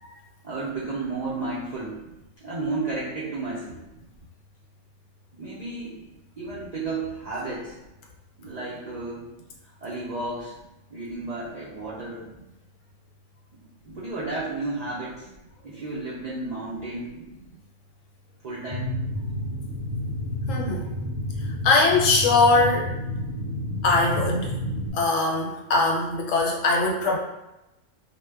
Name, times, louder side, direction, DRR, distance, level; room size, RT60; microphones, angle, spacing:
voice 1, 0.4-2.0 2.4-3.8 5.3-6.0 6.4-7.8 8.4-9.3 9.6-10.5 10.9-12.2 13.9-15.3 15.6-17.3 18.4-19.0, right 3 dB, 80° right, -7 dB, 0.3 m, -32 dB
sound 1, 18.7-24.9, left 1 dB, 45° left, 0.4 m, -30 dB
voice 2, 20.5-20.9 21.4-22.9 23.8-24.5 24.9-27.2, left 3 dB, 75° left, 0 dB, 0.9 m, -21 dB
2.1 x 2.0 x 3.3 m, 0.95 s
omnidirectional pair, 1.4 m